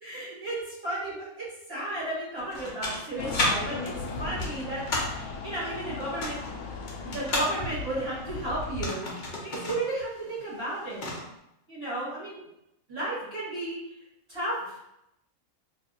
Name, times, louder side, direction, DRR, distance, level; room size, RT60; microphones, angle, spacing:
voice 1, 0.0-3.9 4.2-6.4 7.0-11.0 11.7-12.4 12.9-13.8 14.3-14.8, right 1 dB, 45° right, -9 dB, 1.5 m, -33 dB
sound 1, 2.4-3.5 3.9-5.2 6.0-7.5 8.6-9.8 10.1-10.2 10.6-11.3, left 2 dB, 45° left, 0.7 m, -32 dB
sound 2, 3.2-8.9, left 3 dB, 85° left, 1.0 m, -37 dB
2.7 x 2.2 x 4.0 m, 0.83 s
omnidirectional pair, 1.5 m